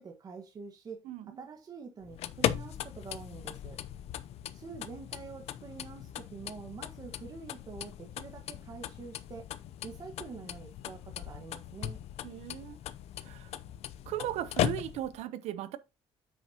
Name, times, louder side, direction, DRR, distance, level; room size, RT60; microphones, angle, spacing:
voice 1, 0.0-1.0 1.4-3.8 4.5-9.5 9.8-12.0, right 5 dB, 35° right, 1.4 m, -46 dB
sound 1, 2.0-15.2, left 11 dB, 65° left, 0.6 m, -38 dB
voice 2, 12.2-12.8 13.2-13.5 14.1-15.8, right 12 dB, 75° right, 0.9 m, -37 dB
8.5 x 6.4 x 2.8 m
cardioid pair, 135°, 11 cm